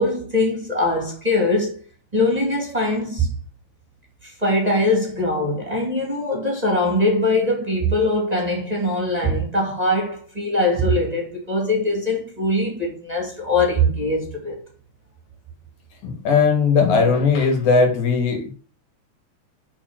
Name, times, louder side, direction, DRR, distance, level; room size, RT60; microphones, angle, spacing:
voice 1, 0.0-1.8 2.1-3.3 4.2-14.5, left 1 dB, 15° right, 2.2 m, -22 dB
voice 2, 16.0-18.5, left 5 dB, 85° left, 3.4 m, -18 dB
7.3 x 5.3 x 6.4 m
omnidirectional pair, 3.3 m